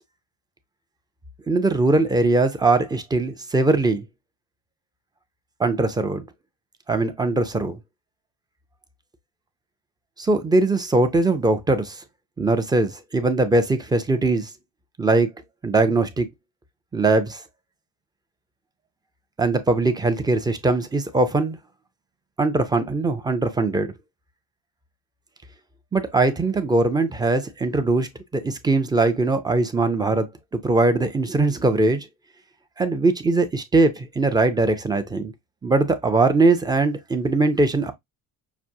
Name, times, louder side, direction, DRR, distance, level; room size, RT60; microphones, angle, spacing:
voice 1, 1.5-4.0 5.6-6.2 6.9-7.8 10.2-12.0 12.4-14.5 15.0-15.3 15.6-16.3 16.9-17.4 19.4-21.6 22.4-23.9 25.9-30.3 30.6-32.1 32.8-35.3 35.6-37.9, right 2 dB, 10° right, 0.4 m, -21 dB
5.9 x 2.5 x 2.6 m
cardioid pair, 180°, 38 cm